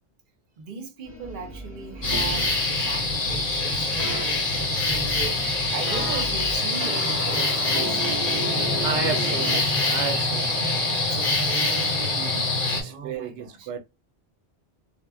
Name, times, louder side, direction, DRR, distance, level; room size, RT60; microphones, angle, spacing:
voice 1, 0.6-9.6 10.8-13.7, right 5 dB, 55° right, 0.8 m, -38 dB
sound 1, 1.0-6.6, right 1 dB, 20° left, 0.8 m, -40 dB
sound 2, 2.0-12.8, left 2 dB, 55° left, 0.8 m, -25 dB
sound 3, 2.1-2.5 4.0-4.2 5.9-6.2 6.8-9.6, right 2 dB, 35° right, 0.3 m, -33 dB
voice 2, 8.8-11.4 12.8-13.8, right 6 dB, 90° right, 0.9 m, -33 dB
2.1 x 2.1 x 3.5 m
omnidirectional pair, 1.1 m